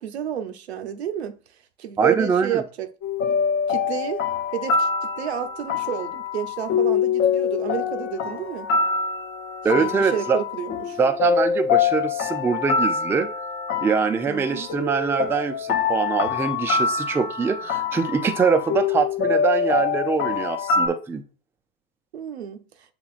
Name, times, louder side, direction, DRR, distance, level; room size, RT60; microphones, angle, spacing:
voice 1, 0.0-1.4 1.8-2.9 3.7-4.2 4.5-4.9 5.2-8.7 9.7-11.0 14.2-14.7 22.1-22.6, right 9 dB, 85° right, 0.7 m, -30 dB
voice 2, 2.0-2.6 9.6-10.4 11.0-13.3 13.8-21.2, right 5 dB, 10° right, 0.3 m, -23 dB
sound 1, 3.0-20.9, left 6 dB, 40° left, 0.9 m, -25 dB
7.0 x 3.0 x 2.4 m
hypercardioid pair, 95°, 31 cm